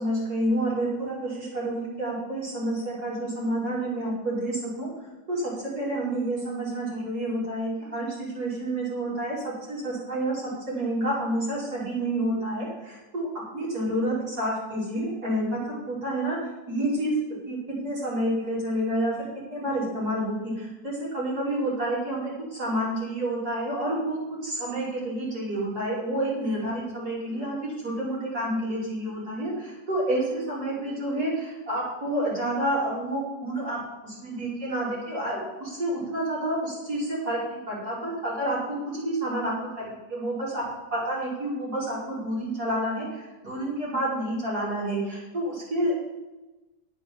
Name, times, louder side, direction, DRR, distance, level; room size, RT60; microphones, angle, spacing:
voice 1, 0.0-4.9 5.3-13.3 13.5-16.4 16.7-40.6 40.9-46.0, right 1 dB, 60° right, -7 dB, 6.0 m, -29 dB
9.7 x 9.2 x 7.6 m, 1.1 s
omnidirectional pair, 1.9 m